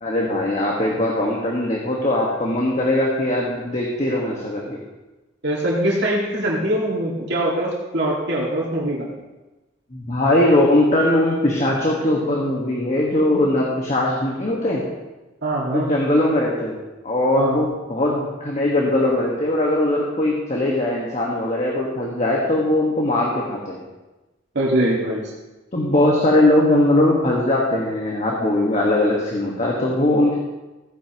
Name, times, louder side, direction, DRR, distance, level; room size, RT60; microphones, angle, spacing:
voice 1, 0.0-4.8 9.9-14.8 15.7-23.8 25.7-30.4, left 1 dB, 35° left, -3 dB, 1.5 m, -20 dB
voice 2, 5.4-9.1 15.4-15.9 17.4-17.6 24.5-25.2, right 1 dB, 60° right, -5 dB, 2.0 m, -22 dB
15.5 x 9.8 x 3.0 m, 1.1 s
head